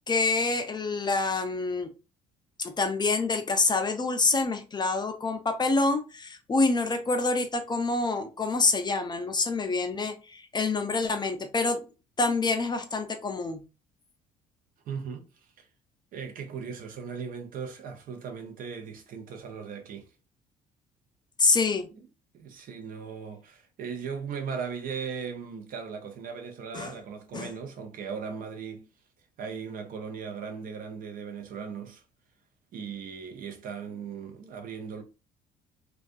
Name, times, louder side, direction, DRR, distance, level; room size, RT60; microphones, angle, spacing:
voice 1, 0.1-1.9 2.6-11.8 12.2-13.6 21.4-21.9 26.7-26.9 27.3-27.5, left 3 dB, 25° left, 0.5 m, -26 dB
voice 2, 14.9-15.3 15.6-15.7 16.1-20.1 22.3-28.9 29.4-32.0 32.7-35.0, right 6 dB, 55° right, 0.6 m, -38 dB
2.5 x 2.3 x 2.4 m
hypercardioid pair, 55°, 17 cm